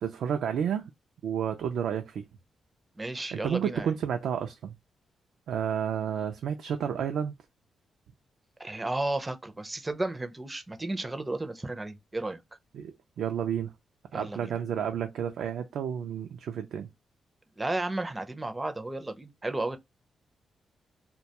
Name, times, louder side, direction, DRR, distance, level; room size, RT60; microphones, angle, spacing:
voice 1, 0.0-0.8 1.2-2.2 3.3-4.7 5.5-7.3 12.7-13.7 14.1-16.9, right 8 dB, 85° right, 0.3 m, -31 dB
voice 2, 3.0-3.9 8.6-12.4 14.1-14.5 17.6-19.8, right 2 dB, 15° right, 0.4 m, -33 dB
2.2 x 2.2 x 2.7 m
cardioid pair, 110°, 0 cm